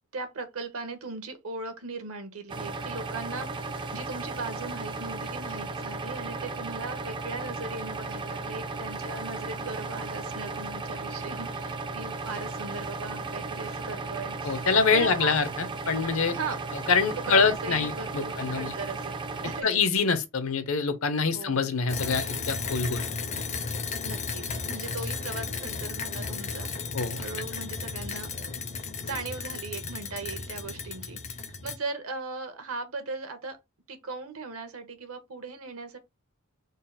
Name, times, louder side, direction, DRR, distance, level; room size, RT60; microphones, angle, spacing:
voice 1, 0.1-14.7 14.9-15.3 16.3-16.6 17.3-19.8 21.3-21.7 24.0-26.7 27.2-28.5 29.0-33.6 33.9-36.0, right 3 dB, 75° right, 1.1 m, -38 dB
sound 1, 2.5-19.6, right 3 dB, 20° right, 0.4 m, -35 dB
voice 2, 14.4-16.4 16.9-18.7 19.6-23.0 26.9-27.2, left 5 dB, 65° left, 0.7 m, -25 dB
sound 2, 21.9-31.8, left 4 dB, 30° left, 0.5 m, -34 dB
3.9 x 2.0 x 4.0 m
head